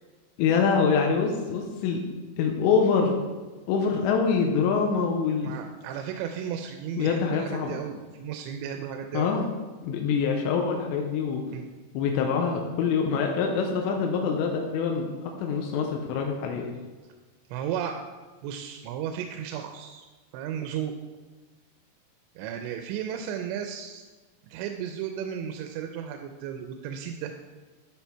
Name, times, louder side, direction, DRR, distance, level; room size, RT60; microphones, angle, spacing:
voice 1, 0.4-2.0 2.4-3.2 3.7-5.6 7.0-7.8 9.1-9.5 9.8-11.4 11.9-16.7, left 5 dB, 85° left, 2 dB, 3.0 m, -25 dB
voice 2, 5.4-9.3 11.5-11.7 17.5-18.0 18.4-20.1 20.3-20.9 22.4-24.0 24.5-27.3, right 9 dB, 85° right, 5 dB, 2.9 m, -34 dB
11.5 x 5.7 x 4.5 m, 1.3 s
omnidirectional pair, 5.2 m